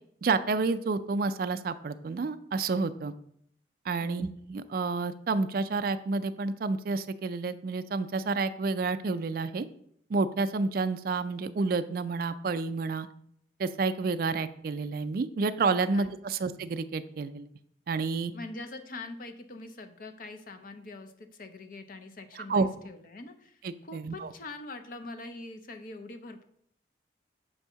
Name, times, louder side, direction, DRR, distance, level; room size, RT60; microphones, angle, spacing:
voice 1, 0.2-3.1 3.9-9.7 10.1-13.1 13.6-17.5 17.9-18.3 22.4-22.7 23.6-24.3, right 4 dB, 50° right, 10 dB, 0.3 m, -29 dB
voice 2, 4.0-4.3 15.9-16.1 16.4-16.5 18.3-26.5, left 2 dB, 50° left, 7 dB, 0.6 m, -44 dB
7.0 x 2.7 x 5.6 m, 0.67 s
head